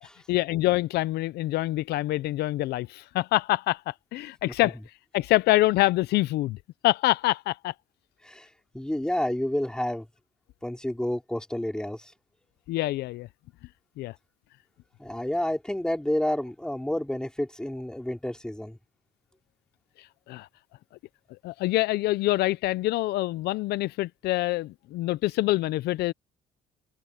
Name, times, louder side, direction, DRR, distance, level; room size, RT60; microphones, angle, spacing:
voice 1, 0.3-4.8 5.1-6.6 6.8-7.7 12.7-13.3 14.0-14.1 20.3-20.5 21.4-26.1, left 17 dB, 75° left, 0.5 m, -25 dB
voice 2, 8.7-10.1 10.6-12.1 15.0-18.8, left 1 dB, 5° left, 4.8 m, -30 dB
cardioid pair, 110°, 17 cm